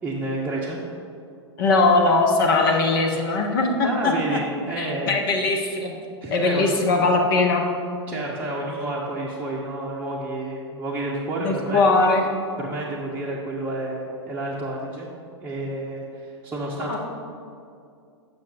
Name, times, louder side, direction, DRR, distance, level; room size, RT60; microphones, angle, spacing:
voice 1, 0.0-0.8 3.8-5.1 6.2-6.9 8.1-11.8 12.6-15.1 15.4-17.0, right 2 dB, 10° right, -6 dB, 0.9 m, -30 dB
voice 2, 1.6-4.4 4.8-5.9 6.3-7.6 11.4-12.2 16.9-17.0, left 3 dB, 50° left, 2 dB, 1.0 m, -20 dB
8.9 x 6.1 x 3.8 m, 2.4 s
figure-of-eight pair, 100°, 14 cm